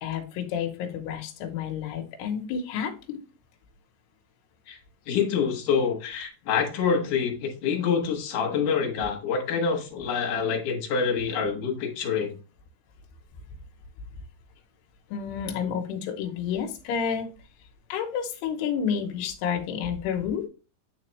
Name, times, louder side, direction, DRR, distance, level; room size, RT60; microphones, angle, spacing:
voice 1, 0.0-3.2 15.1-17.3 17.9-20.5, left 7 dB, 85° left, 2 dB, 2.9 m, -30 dB
voice 2, 5.1-12.3, left 6 dB, 60° left, 1 dB, 2.6 m, -26 dB
9.4 x 4.2 x 3.1 m, 0.33 s
omnidirectional pair, 4.7 m